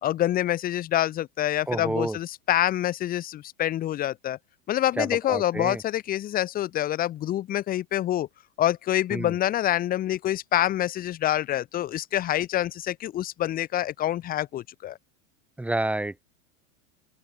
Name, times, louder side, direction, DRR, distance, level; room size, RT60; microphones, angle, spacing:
voice 1, 0.0-4.4 4.7-8.3 8.6-15.0, left 13 dB, 20° left, 1.8 m, -26 dB
voice 2, 1.7-2.2 5.0-5.8 9.1-9.3 15.6-16.2, right 2 dB, 5° right, 2.6 m, -29 dB
open air
supercardioid pair, 165°, 39 cm